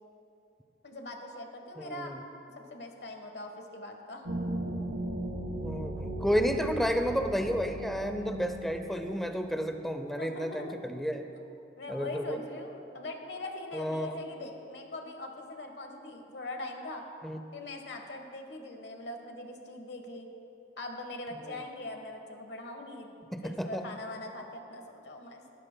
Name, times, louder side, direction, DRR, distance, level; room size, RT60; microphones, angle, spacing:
voice 1, 0.8-2.2 2.7-4.3 6.5-6.9 10.2-10.8 11.3-11.4 11.8-17.0 17.5-20.3 20.8-23.1 23.4-25.4, left 2 dB, 60° left, 4 dB, 1.2 m, -42 dB
voice 2, 1.8-2.2 5.5-11.2 11.9-12.4 13.7-14.2 17.2-17.4 21.4-21.6 23.3-23.8, equal, ahead, 6 dB, 0.5 m, -31 dB
sound 1, 4.3-9.7, right 1 dB, 80° right, 1.4 m, -37 dB
20.0 x 12.5 x 2.2 m, 2.8 s
head